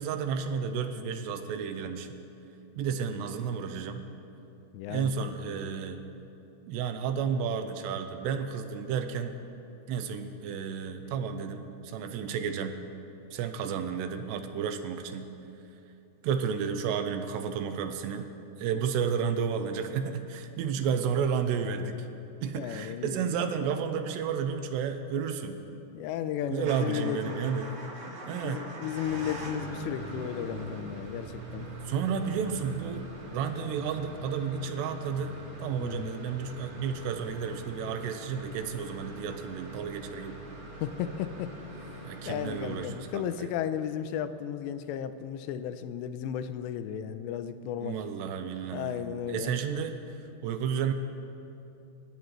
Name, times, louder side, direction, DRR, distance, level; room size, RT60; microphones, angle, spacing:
voice 1, 0.0-2.1 2.8-4.0 4.9-6.0 6.7-9.4 9.9-12.8 13.3-15.3 16.2-18.3 18.6-22.1 22.4-25.6 26.5-27.7 28.3-28.6 31.8-33.1 33.3-40.4 42.0-43.5 47.8-50.0 50.4-50.9, right 7 dB, 85° right, 7 dB, 2.8 m, -32 dB
voice 2, 4.7-5.7 22.6-23.3 25.9-27.6 28.1-31.7 35.8-36.1 40.8-41.5 42.2-48.0 48.7-49.5, left 9 dB, 85° left, 11 dB, 2.8 m, -34 dB
Motor vehicle (road) / Engine starting / Idling, 26.6-43.5, right 1 dB, 50° right, 1.7 m, -42 dB
28.0 x 14.5 x 3.2 m, 2.8 s
omnidirectional pair, 5.1 m